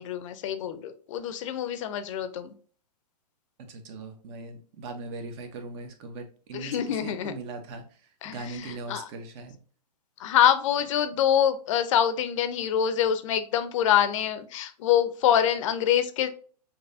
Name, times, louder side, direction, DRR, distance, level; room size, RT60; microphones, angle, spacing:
voice 1, 0.0-2.5 6.5-7.3 8.2-9.1 10.2-16.3, left 10 dB, 50° left, 11 dB, 0.6 m, -25 dB
voice 2, 3.6-7.8 8.2-9.6, right 3 dB, 40° right, 6 dB, 1.0 m, -40 dB
6.0 x 2.9 x 2.6 m, 0.43 s
hypercardioid pair, 120°, 21 cm